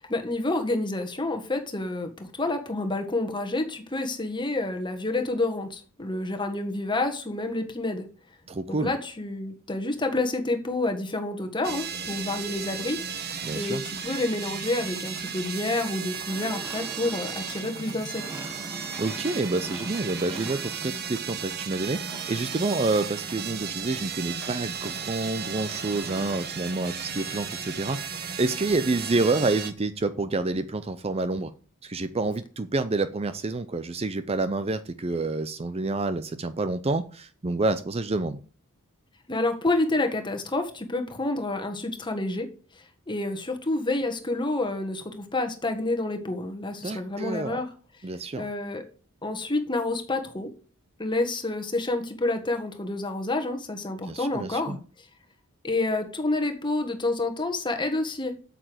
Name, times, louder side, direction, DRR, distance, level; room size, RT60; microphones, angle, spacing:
voice 1, 0.1-8.1 8.7-13.3 13.5-18.3 39.3-42.5 42.8-47.7 48.3-48.8 49.2-50.5 51.0-54.8 55.6-58.5, left 2 dB, 20° left, 6 dB, 1.6 m, -29 dB
voice 2, 8.5-8.9 13.4-13.8 19.0-22.0 22.3-31.5 31.8-38.4 46.8-47.6 48.0-48.5 54.0-54.8, right 3 dB, 30° right, 12 dB, 0.5 m, -28 dB
sound 1, 11.6-29.7, right 6 dB, 45° right, 1.2 m, -35 dB
sound 2, 16.3-20.9 22.1-22.3 24.4-24.5 24.8-25.0 25.5-26.5, right 1 dB, 10° right, 2.5 m, -42 dB
8.4 x 6.8 x 7.8 m, 0.41 s
head